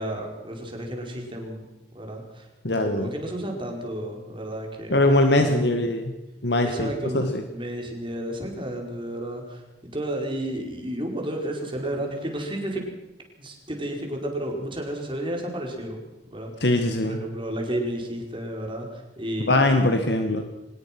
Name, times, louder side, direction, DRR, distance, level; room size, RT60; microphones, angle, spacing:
voice 1, 0.0-1.7 1.9-5.0 5.3-5.8 6.6-12.8 13.4-19.7, right 1 dB, 30° right, 1 dB, 5.0 m, -32 dB
voice 2, 2.6-3.1 4.9-6.1 6.4-7.4 16.6-17.2 19.5-20.4, left 1 dB, 70° left, 6 dB, 1.9 m, -21 dB
24.5 x 20.0 x 6.1 m, 1.0 s
head